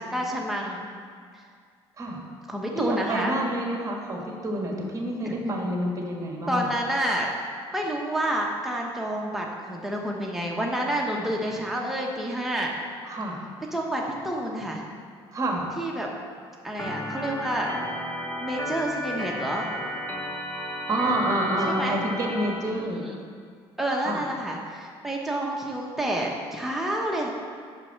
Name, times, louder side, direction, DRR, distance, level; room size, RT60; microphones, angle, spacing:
voice 1, 0.1-0.9 2.5-3.3 5.2-5.6 6.5-7.3 7.7-12.7 13.7-14.9 15.8-16.1 16.6-17.7 18.4-19.7 21.7-22.0 22.8-23.2 23.8-27.3, right 1 dB, 5° right, -1 dB, 1.1 m, -29 dB
voice 2, 2.7-6.7 11.1-11.3 13.0-13.4 15.3-15.6 20.9-23.0 24.0-24.2, right 1 dB, 30° right, 0 dB, 1.7 m, -28 dB
Organ, 16.8-22.5, left 1 dB, 15° left, 1.5 m, -33 dB
5.9 x 5.5 x 5.9 m, 2.1 s
supercardioid pair, 75°, 11 cm